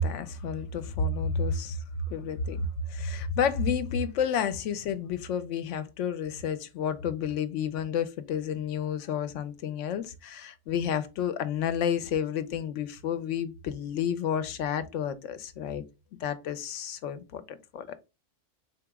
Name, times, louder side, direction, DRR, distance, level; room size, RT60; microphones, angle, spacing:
voice 1, 0.0-15.8 16.2-18.0, left 6 dB, 80° left, 0.9 m, -30 dB
4.1 x 2.9 x 3.4 m
omnidirectional pair, 1.2 m